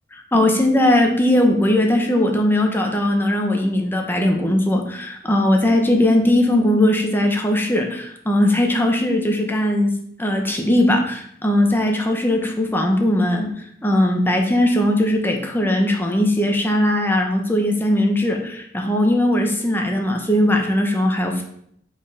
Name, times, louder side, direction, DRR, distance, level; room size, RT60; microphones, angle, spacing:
voice 1, 0.3-9.9 10.2-13.5 13.8-21.4, left 1 dB, 10° left, 2 dB, 1.1 m, -19 dB
5.3 x 5.3 x 5.0 m, 0.68 s
head